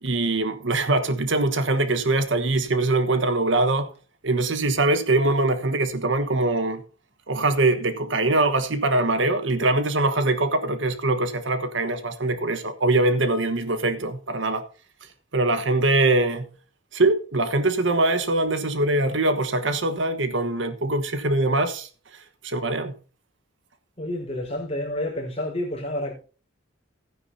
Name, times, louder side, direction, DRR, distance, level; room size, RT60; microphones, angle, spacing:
voice 1, 0.0-3.9 4.2-6.8 7.3-14.6 15.3-16.5 16.9-21.9 22.4-22.9, right 2 dB, 70° right, 1.3 m, -23 dB
voice 2, 24.0-26.1, left 1 dB, 30° left, 4.6 m, -29 dB
15.5 x 9.9 x 2.7 m
head